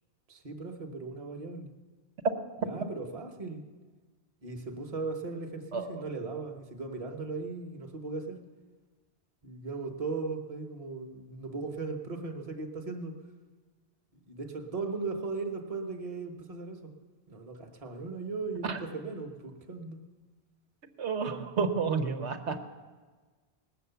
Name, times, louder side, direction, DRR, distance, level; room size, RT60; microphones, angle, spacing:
voice 1, 0.3-1.7 2.6-3.6 4.4-8.4 9.4-13.1 14.1-16.9 17.3-20.0, right 3 dB, 35° right, 4 dB, 1.1 m, -37 dB
voice 2, 21.0-22.6, right 5 dB, 85° right, 6 dB, 1.2 m, -31 dB
19.0 x 7.9 x 6.9 m, 1.4 s
omnidirectional pair, 1.1 m